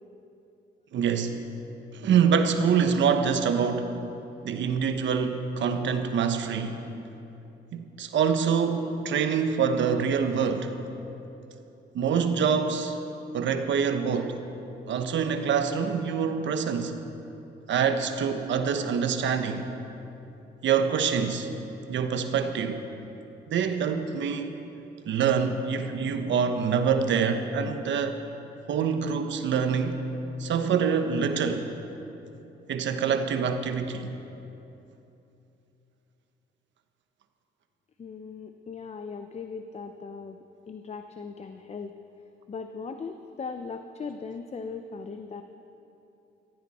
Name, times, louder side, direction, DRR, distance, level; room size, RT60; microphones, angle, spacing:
voice 1, 0.9-1.4 1.9-4.0 4.4-6.8 7.7-10.8 11.9-13.0 13.3-14.4 14.9-17.0 17.7-19.7 20.6-21.5 21.9-22.8 23.5-24.5 25.1-28.2 28.7-30.0 30.4-31.7 32.7-34.1, right 6 dB, 70° right, 7 dB, 1.1 m, -25 dB
voice 2, 38.0-40.4 40.7-41.9 42.5-45.4, left 5 dB, 35° left, 7 dB, 0.7 m, -38 dB
16.0 x 15.0 x 4.3 m, 2.9 s
cardioid pair, 90°, 20 cm